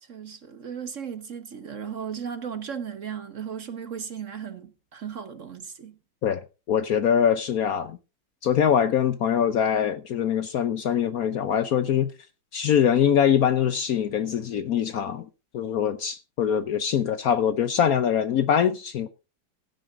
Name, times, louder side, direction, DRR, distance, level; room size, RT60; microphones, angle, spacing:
voice 1, 0.0-6.0, right 7 dB, 45° right, 1.3 m, -36 dB
voice 2, 6.7-8.0 8.4-12.1 12.5-15.3 15.5-19.1, left 8 dB, 65° left, 1.0 m, -23 dB
16.0 x 9.1 x 3.6 m
omnidirectional pair, 2.0 m